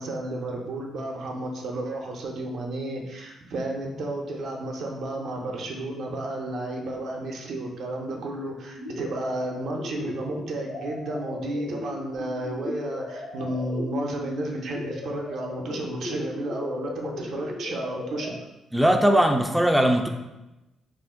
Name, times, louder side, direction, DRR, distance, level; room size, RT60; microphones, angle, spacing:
voice 1, 0.0-18.3, right 1 dB, 65° right, 0 dB, 0.6 m, -32 dB
sound 1, 8.7-18.3, left 2 dB, 60° left, 0.6 m, -37 dB
voice 2, 18.7-20.1, right 1 dB, 5° right, 4 dB, 0.3 m, -19 dB
2.5 x 2.1 x 3.5 m, 0.99 s
cardioid pair, 90°, 0 cm